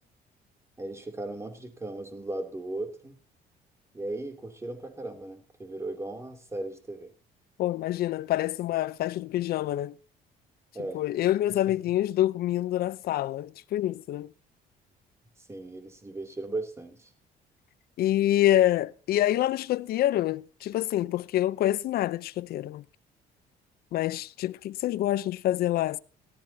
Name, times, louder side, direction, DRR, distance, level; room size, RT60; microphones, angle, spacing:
voice 1, 0.8-3.2 3.9-7.1 10.7-11.0 15.5-17.1, right 2 dB, 15° right, 2.9 m, -37 dB
voice 2, 7.6-9.9 10.9-14.3 18.0-22.8 23.9-26.0, left 13 dB, 65° left, 0.7 m, -26 dB
18.0 x 14.0 x 2.8 m
cardioid pair, 110°, 17 cm